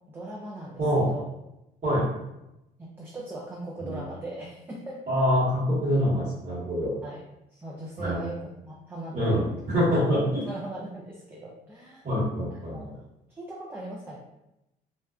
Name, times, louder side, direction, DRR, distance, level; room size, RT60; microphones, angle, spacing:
voice 1, 0.1-1.3 2.8-5.0 7.0-7.2 7.5-9.5 9.9-12.1 12.7-13.0 13.3-14.2, right 1 dB, 15° right, -3 dB, 0.3 m, -39 dB
voice 2, 5.1-7.0 8.0-8.2 9.1-10.5 12.0-12.8, equal, 50° right, -10 dB, 1.3 m, -25 dB
2.6 x 2.1 x 2.3 m, 0.89 s
cardioid pair, 110°, 17 cm